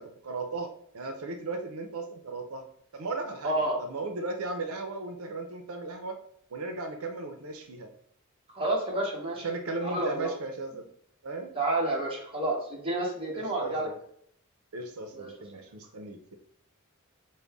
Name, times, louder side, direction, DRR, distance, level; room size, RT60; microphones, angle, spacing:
voice 1, 0.0-2.6 2.9-6.2 6.5-7.9 9.4-10.9 11.2-11.5 13.3-14.0 14.7-16.4, right 3 dB, 90° right, 5 dB, 0.6 m, -36 dB
voice 2, 3.4-3.8 8.5-9.5 9.8-10.3 11.5-13.9 15.2-15.3, right 2 dB, 25° right, -2 dB, 1.0 m, -29 dB
5.2 x 2.2 x 3.4 m, 0.68 s
head